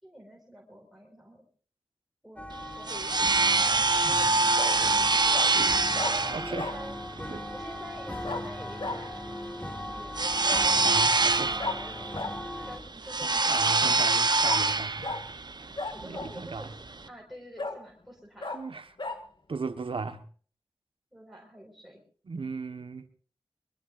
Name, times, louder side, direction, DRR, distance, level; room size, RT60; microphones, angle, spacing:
voice 1, 0.0-1.5 2.2-2.4 2.7-5.5 5.9-7.0 7.5-9.2 9.9-12.1 12.7-14.1 15.9-16.7 17.1-18.6 21.1-22.0, equal, ahead, 5.2 m, -47 dB
sound 1, 2.4-12.8, left 1 dB, 15° left, 2.0 m, -39 dB
sound 2, 2.5-17.1, right 3 dB, 50° right, 1.0 m, -26 dB
Bark, 2.9-3.3 4.6-4.8 5.3-5.5 5.9-6.1 6.6-6.8 8.2-8.4 8.8-9.0 10.4-10.7 11.6-11.8 12.1-12.3 14.4-14.6 15.0-15.2 15.8-16.4 16.9-17.0 17.6-17.8 18.4-18.6 19.0-19.2, left 3 dB, 60° left, 2.1 m, -34 dB
voice 2, 6.3-6.7 7.2-7.5 10.8-11.5 13.2-15.2 16.0-16.7 18.5-19.0 19.5-20.3 22.2-23.1, right 4 dB, 75° right, 1.3 m, -37 dB
23.0 x 22.0 x 2.6 m
cardioid pair, 50°, 9 cm